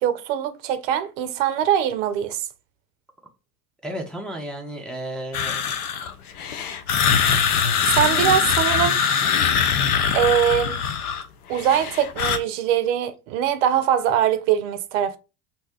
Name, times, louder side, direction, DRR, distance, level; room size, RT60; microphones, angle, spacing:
voice 1, 0.0-2.5 7.9-9.0 10.1-10.8 11.5-15.2, right 9 dB, 60° right, 0.5 m, -22 dB
voice 2, 3.8-5.6, right 1 dB, ahead, 0.5 m, -33 dB
sound 1, 5.3-11.2 11.5-12.4, left 7 dB, 85° left, 0.6 m, -22 dB
2.7 x 2.1 x 3.4 m
hypercardioid pair, 85°, 43 cm